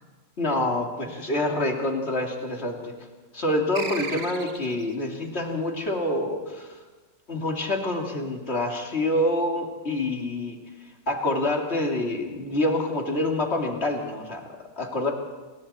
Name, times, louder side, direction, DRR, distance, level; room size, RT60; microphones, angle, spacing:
voice 1, 0.4-2.9 3.3-6.7 7.3-10.6 11.1-14.5 14.8-15.1, left 1 dB, 35° left, 1 dB, 2.9 m, -26 dB
sound 1, 3.7-4.9, right 5 dB, 60° right, 2.0 m, -35 dB
29.0 x 22.0 x 4.3 m, 1.3 s
omnidirectional pair, 2.0 m